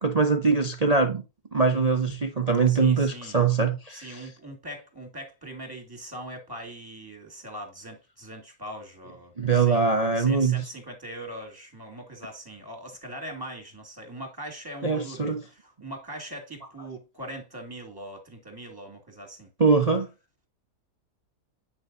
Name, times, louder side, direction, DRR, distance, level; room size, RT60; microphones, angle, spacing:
voice 1, 0.0-1.2 1.5-4.2 9.4-10.6 14.8-15.4 19.6-20.1, right 4 dB, 30° right, 0.8 m, -22 dB
voice 2, 2.7-3.4 3.9-9.8 10.1-19.5, right 1 dB, 15° right, 2.6 m, -41 dB
9.1 x 6.5 x 2.6 m
omnidirectional pair, 1.8 m